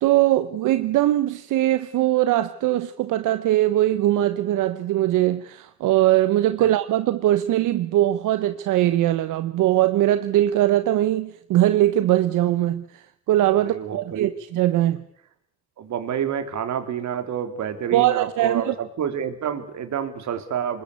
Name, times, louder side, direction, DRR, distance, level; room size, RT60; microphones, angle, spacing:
voice 1, 0.0-15.0 17.9-18.7, right 14 dB, 90° right, 1.1 m, -21 dB
voice 2, 13.5-14.3 15.8-20.8, right 8 dB, 65° right, 3.4 m, -28 dB
26.0 x 21.0 x 8.4 m
cardioid pair, 90°, 30 cm